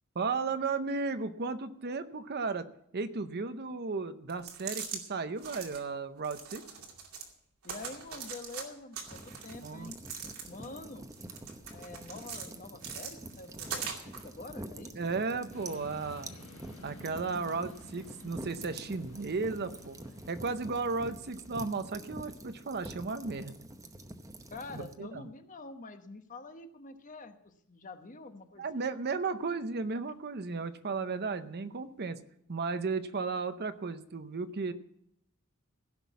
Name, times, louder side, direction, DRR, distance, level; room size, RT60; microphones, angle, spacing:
voice 1, 0.1-2.7 2.9-6.6 9.6-9.9 15.0-16.3 16.8-20.0 20.3-23.6 24.7-25.3 28.6-32.2 32.5-34.7, right 4 dB, 50° right, 11 dB, 0.7 m, -34 dB
sound 1, 4.3-5.0 5.4-5.8 6.2-7.3 7.6-8.6 8.9-10.7 11.1-12.5 12.8-14.2, right 6 dB, 90° right, 2.3 m, -41 dB
voice 2, 7.6-10.0 10.5-11.1 11.7-15.0 15.3-15.4 24.5-28.8, left 2 dB, 35° left, 7 dB, 1.0 m, -46 dB
sound 2, 9.1-24.9, right 1 dB, 15° right, 0.8 m, -47 dB
sound 3, 15.5-21.6, left 1 dB, 70° left, 1.8 m, -52 dB
16.0 x 6.1 x 8.3 m, 0.73 s
head